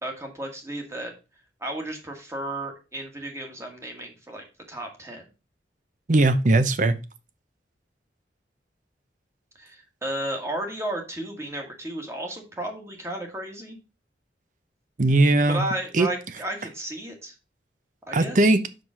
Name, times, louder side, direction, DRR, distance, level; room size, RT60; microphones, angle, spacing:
voice 1, 0.0-1.1 1.6-5.2 9.6-13.8 15.5-17.3 18.1-18.5, right 1 dB, 15° right, 1.6 m, -33 dB
voice 2, 6.1-6.9 15.0-15.6 15.9-16.1 18.1-18.6, right 2 dB, 45° right, 0.7 m, -19 dB
5.7 x 5.1 x 6.1 m
head